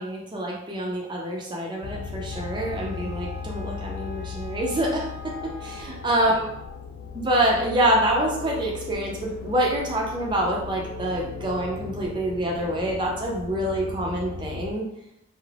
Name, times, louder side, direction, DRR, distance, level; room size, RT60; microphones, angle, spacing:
voice 1, 0.0-6.5 7.2-14.8, right 1 dB, 25° right, -1 dB, 0.4 m, -26 dB
sound 1, 1.8-14.7, left 5 dB, 85° left, 0.3 m, -37 dB
Wind instrument woodwind instrument, 2.3-6.8, right 2 dB, 45° left, 0.7 m, -46 dB
2.4 x 2.0 x 3.1 m, 0.80 s
head